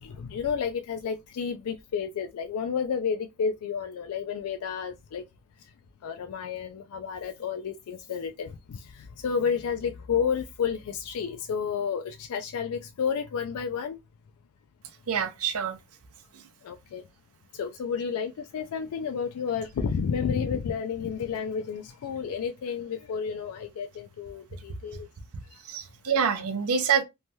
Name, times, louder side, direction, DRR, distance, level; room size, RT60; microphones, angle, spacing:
voice 1, 0.0-5.2 6.0-14.0 16.6-17.0 17.5-25.1, left 6 dB, 80° left, 0.3 m, -31 dB
voice 2, 15.1-15.8 25.7-27.0, right 7 dB, 85° right, 0.6 m, -26 dB
3.1 x 2.2 x 2.7 m
head